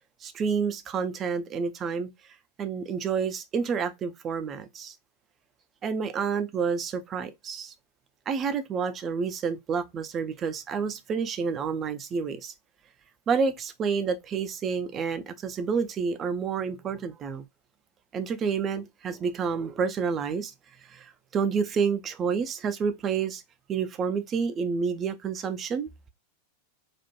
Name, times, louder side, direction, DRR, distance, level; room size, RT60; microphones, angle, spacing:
voice 1, 0.2-2.1 2.6-4.9 5.8-7.7 8.3-12.5 13.3-17.4 18.1-20.5 20.8-23.4 23.7-25.9, right 6 dB, 25° right, 0.4 m, -29 dB
2.4 x 2.1 x 2.8 m
figure-of-eight pair, 90°, 0 cm